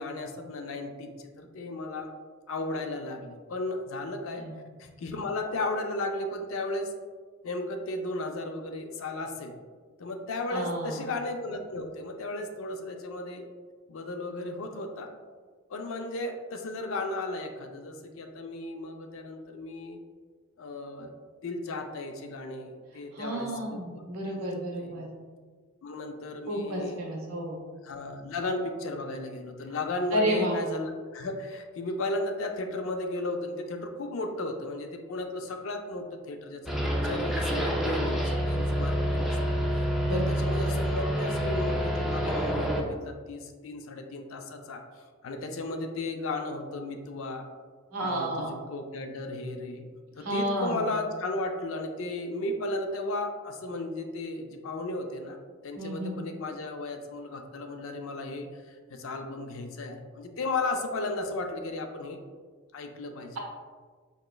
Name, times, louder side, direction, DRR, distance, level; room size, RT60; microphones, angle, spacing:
voice 1, 0.0-2.1 2.5-4.4 4.8-6.9 7.4-9.5 10.0-13.4 13.9-15.1 15.7-20.0 20.6-21.1 21.4-24.5 24.8-24.9 25.8-27.0 27.8-36.7 37.0-39.4 40.1-44.8 45.2-47.5 48.0-49.8 50.2-55.4 55.6-62.2 62.7-63.4, left 2 dB, 70° left, 5 dB, 0.4 m, -35 dB
voice 2, 10.5-11.0 23.1-25.1 26.5-27.6 30.1-30.6 40.0-40.2 40.7-40.8 47.9-48.5 50.2-50.9 55.7-56.3, equal, 90° right, -1 dB, 0.8 m, -31 dB
sound 1, 36.7-42.8, equal, ahead, 0.3 m, -28 dB
4.2 x 2.9 x 2.2 m, 1.5 s
head